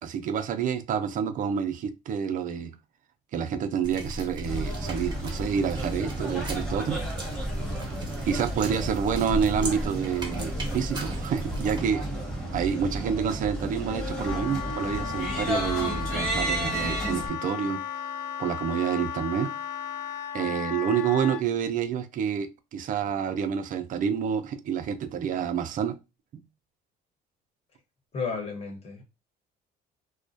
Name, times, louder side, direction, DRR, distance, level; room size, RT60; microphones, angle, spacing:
voice 1, 0.0-2.7 3.3-7.0 8.2-12.0 12.5-17.8 18.4-19.5 20.3-25.9 26.3-26.4, right 7 dB, 50° right, 0.4 m, -28 dB
sound 1, 3.8-11.8, equal, 25° right, 0.8 m, -36 dB
sound 2, 4.5-17.3, right 1 dB, 5° left, 1.1 m, -32 dB
Wind instrument woodwind instrument, 13.9-21.4, left 8 dB, 85° left, 0.4 m, -35 dB
voice 2, 28.1-29.0, left 5 dB, 35° left, 1.0 m, -33 dB
2.3 x 2.1 x 2.6 m
cardioid pair, 110°, 17 cm